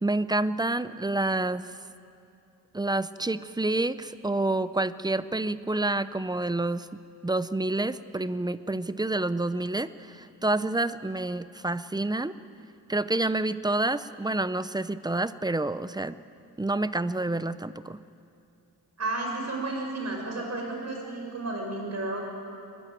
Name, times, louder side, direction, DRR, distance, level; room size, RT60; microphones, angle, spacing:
voice 1, 0.0-1.7 2.7-12.3 12.9-16.2 16.6-18.0, right 2 dB, 10° right, 14 dB, 0.5 m, -28 dB
voice 2, 19.0-22.2, right 2 dB, 40° right, 1 dB, 5.9 m, -32 dB
22.5 x 22.0 x 9.1 m, 2.6 s
wide cardioid pair, 150°, 40 cm